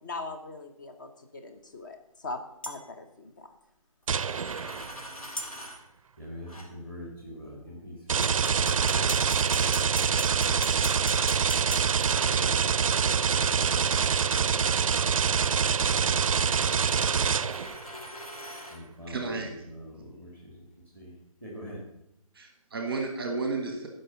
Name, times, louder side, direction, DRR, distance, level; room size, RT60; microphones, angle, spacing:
voice 1, 0.0-2.4 2.7-3.5, left 3 dB, 35° left, 6 dB, 1.0 m, -40 dB
sound 1, 2.6-2.8 5.4-5.5 8.2-11.9, equal, 70° left, 1.8 m, -36 dB
Coin (dropping), 4.0-5.8 6.5-6.7 8.7-10.2 12.0-18.8, equal, 90° left, 3.1 m, -44 dB
sound 2, 4.1-5.0 8.1-17.8, right 6 dB, 65° right, 0.4 m, -25 dB
voice 2, 6.2-8.9 10.2-10.6 12.2-14.8 16.4-17.2 18.7-20.7 20.9-21.1 21.4-21.8, equal, 10° left, -4 dB, 1.6 m, -45 dB
voice 3, 19.1-19.5 22.3-23.9, right 3 dB, 15° right, 4 dB, 1.1 m, -32 dB
11.0 x 5.4 x 6.8 m, 0.82 s
hypercardioid pair, 175°, 18 cm